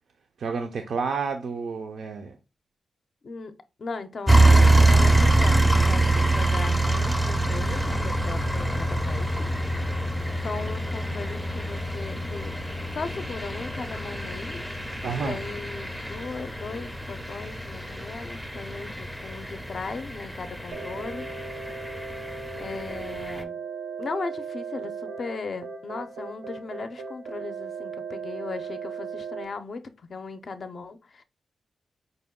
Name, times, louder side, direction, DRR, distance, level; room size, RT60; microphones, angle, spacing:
voice 1, 0.4-2.4 15.0-15.4, right 5 dB, 65° right, 0.4 m, -30 dB
voice 2, 3.2-9.5 10.4-12.5 12.9-15.0 15.2-21.3 22.6-23.6 24.0-31.2, left 4 dB, 45° left, 0.5 m, -37 dB
sound 1, 4.3-23.4, right 2 dB, 5° right, 0.5 m, -25 dB
sound 2, 20.7-29.4, right 5 dB, 90° right, 0.9 m, -37 dB
5.1 x 2.2 x 3.5 m
wide cardioid pair, 130°, 0 cm